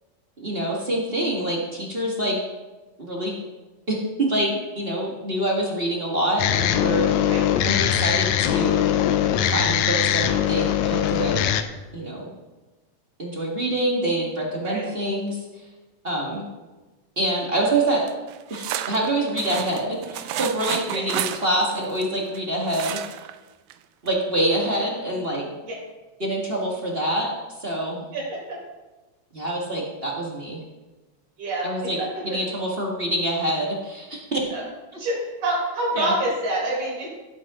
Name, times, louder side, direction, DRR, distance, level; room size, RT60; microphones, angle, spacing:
voice 1, 0.4-2.4 3.0-3.3 3.9-7.1 7.6-8.8 9.5-11.5 11.9-12.3 13.2-15.4 16.0-16.5 17.2-18.0 18.5-23.0 24.0-25.5 26.2-27.3 27.6-28.1 29.3-30.6 31.6-32.0 32.2-34.4 36.0-36.1, right 1 dB, 25° right, -2 dB, 1.3 m, -26 dB
sound 1, 6.4-11.6, left 10 dB, 80° left, 1.9 m, -21 dB
sound 2, 18.1-22.4 22.7-23.4 23.7-23.8 24.1-24.2, right 12 dB, 85° right, 2.0 m, -31 dB
voice 2, 28.1-28.6 31.4-32.1 34.5-34.6 35.0-37.1, right 1 dB, 60° right, -7 dB, 5.4 m, -27 dB
16.0 x 8.0 x 3.7 m, 1.2 s
omnidirectional pair, 3.3 m